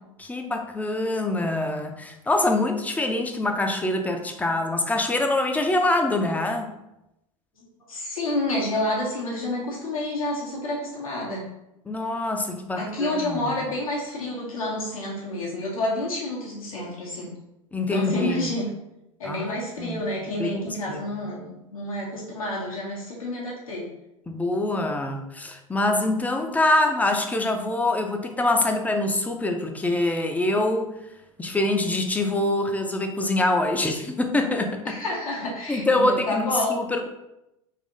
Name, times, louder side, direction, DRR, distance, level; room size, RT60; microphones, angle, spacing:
voice 1, 0.2-6.7 11.9-13.5 17.7-18.5 19.2-20.0 20.2-20.6 20.9-21.0 24.3-30.9 31.4-35.0 35.7-37.1, left 2 dB, 10° left, 4 dB, 0.6 m, -25 dB
voice 2, 7.6-11.5 12.8-17.3 17.9-18.7 19.2-23.9 34.8-36.8, left 1 dB, 80° left, -5 dB, 1.4 m, -29 dB
4.1 x 2.9 x 3.8 m, 0.88 s
figure-of-eight pair, 80°, 18 cm